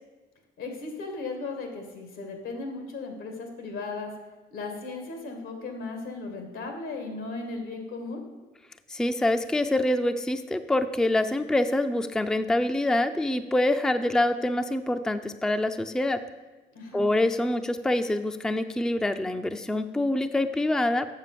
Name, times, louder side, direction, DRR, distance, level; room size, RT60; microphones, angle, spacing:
voice 1, 0.6-4.1 4.5-8.2 16.7-17.0, left 3 dB, 85° left, 4 dB, 2.2 m, -36 dB
voice 2, 8.9-16.2 16.9-21.1, left 1 dB, 5° left, 9 dB, 0.4 m, -25 dB
7.4 x 6.7 x 6.8 m, 1.2 s
cardioid pair, 90°, 20 cm